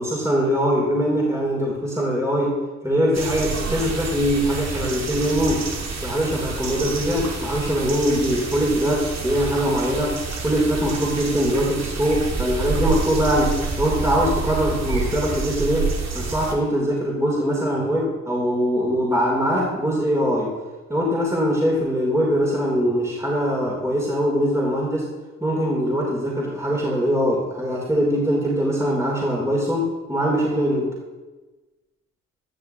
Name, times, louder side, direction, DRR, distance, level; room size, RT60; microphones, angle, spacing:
voice 1, 0.0-5.7 6.0-20.5 20.9-25.1 25.4-30.9, equal, 10° right, -4 dB, 3.4 m, -22 dB
sound 1, 3.1-16.5, right 4 dB, 45° right, 2.5 m, -28 dB
13.0 x 12.0 x 3.0 m, 1.2 s
figure-of-eight pair, 40°, 38 cm